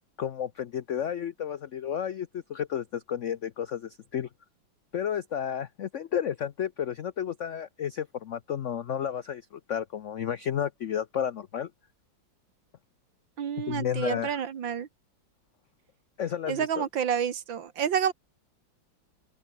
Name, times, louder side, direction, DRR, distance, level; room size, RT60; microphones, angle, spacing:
voice 1, 0.2-4.3 4.9-11.7 13.6-14.4 16.2-16.9, left 9 dB, 75° left, 0.6 m, -32 dB
voice 2, 13.4-14.9 16.5-18.1, right 8 dB, 70° right, 2.2 m, -29 dB
open air
omnidirectional pair, 2.2 m